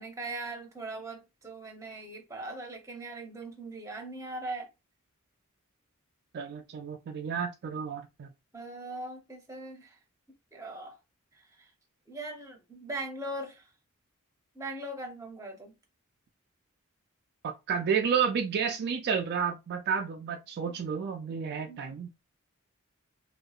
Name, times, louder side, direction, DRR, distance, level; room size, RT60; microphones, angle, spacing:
voice 1, 0.0-4.7 8.5-10.0 10.5-11.0 11.3-11.7 12.1-13.7 14.5-15.7 20.7-20.8 21.7-21.9, right 2 dB, 15° right, 0.7 m, -40 dB
voice 2, 6.3-8.3 17.4-22.1, right 6 dB, 50° right, 0.3 m, -31 dB
2.7 x 2.1 x 2.3 m
head